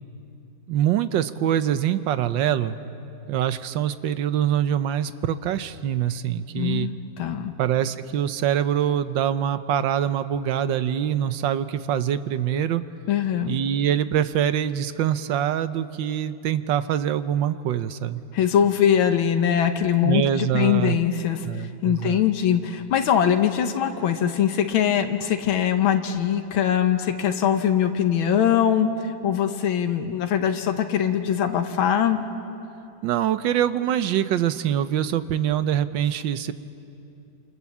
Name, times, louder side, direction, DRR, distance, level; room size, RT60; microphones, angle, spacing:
voice 1, 0.7-2.8 3.3-6.9 7.6-12.8 13.5-18.2 20.0-21.0 21.4-22.2 33.0-36.5, right 10 dB, 70° right, 12 dB, 1.4 m, -24 dB
voice 2, 6.6-7.5 13.1-13.6 18.3-32.2, left 9 dB, 85° left, 6 dB, 1.9 m, -22 dB
28.5 x 26.0 x 7.3 m, 2.7 s
omnidirectional pair, 2.2 m